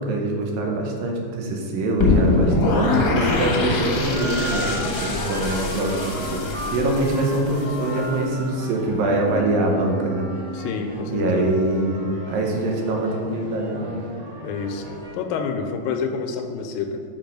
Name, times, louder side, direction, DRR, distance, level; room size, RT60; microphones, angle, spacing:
voice 1, 0.0-10.3 11.1-14.0, right 2 dB, 80° right, 1 dB, 2.8 m, -24 dB
sound 1, 2.0-8.0, left 3 dB, 60° left, 1.3 m, -23 dB
sound 2, 4.1-15.1, equal, 55° right, 3.4 m, -34 dB
voice 2, 10.5-11.5 14.4-14.9 15.1-17.0, left 5 dB, 85° left, 5 dB, 2.3 m, -28 dB
7.3 x 5.9 x 5.2 m, 2.2 s
omnidirectional pair, 4.1 m